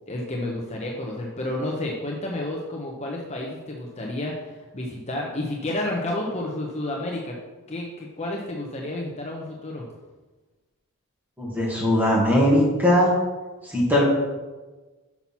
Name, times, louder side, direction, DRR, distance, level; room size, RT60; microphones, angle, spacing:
voice 1, 0.1-7.4 7.7-9.9, left 1 dB, 30° left, -1 dB, 0.8 m, -30 dB
voice 2, 11.4-13.1 13.6-14.0, equal, 10° right, -5 dB, 2.1 m, -20 dB
5.9 x 5.7 x 5.8 m, 1.2 s
head